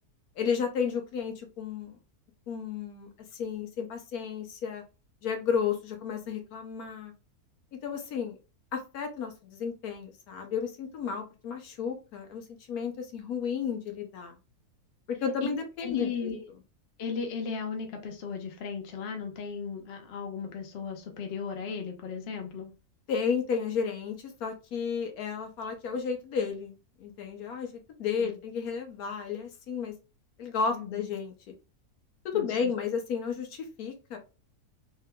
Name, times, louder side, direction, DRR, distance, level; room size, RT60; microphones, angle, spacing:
voice 1, 0.4-2.0 2.5-4.8 5.2-7.1 7.8-8.4 8.7-14.3 15.1-16.3 23.1-26.7 27.0-27.7 28.0-29.9 30.4-31.5 32.3-34.2, left 6 dB, 70° left, 4 dB, 1.2 m, -32 dB
voice 2, 15.8-16.4 17.0-22.7 28.2-28.3 30.7-31.1 32.3-32.7, left 6 dB, 50° left, 3 dB, 0.8 m, -36 dB
3.6 x 2.8 x 2.2 m, 0.31 s
omnidirectional pair, 1.7 m